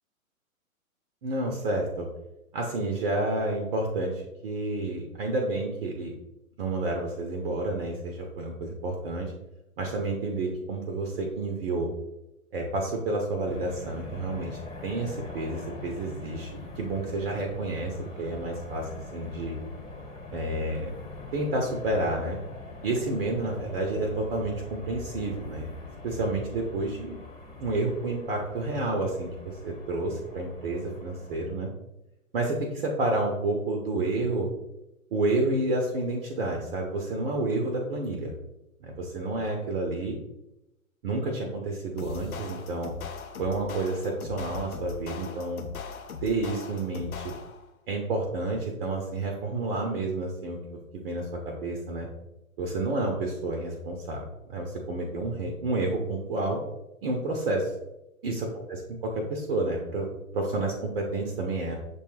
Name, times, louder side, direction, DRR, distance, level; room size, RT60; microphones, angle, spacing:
voice 1, 1.2-2.1 2.5-6.1 6.6-9.3 9.8-11.9 12.5-19.6 20.3-20.9 21.3-22.4 22.8-25.7 26.0-27.2 27.6-31.7 32.3-34.5 35.1-38.3 38.8-40.2 41.0-42.9 43.4-45.6 46.2-47.3 47.9-52.1 52.6-56.6 57.0-57.7 58.2-60.1 60.3-61.7, right 2 dB, 40° right, 1 dB, 0.7 m, -30 dB
sound 1, 13.4-31.5, left 2 dB, 10° left, 1.2 m, -43 dB
sound 2, 42.0-47.7, left 5 dB, 80° left, 0.6 m, -40 dB
6.6 x 2.3 x 3.2 m, 0.93 s
figure-of-eight pair, 120°, 42 cm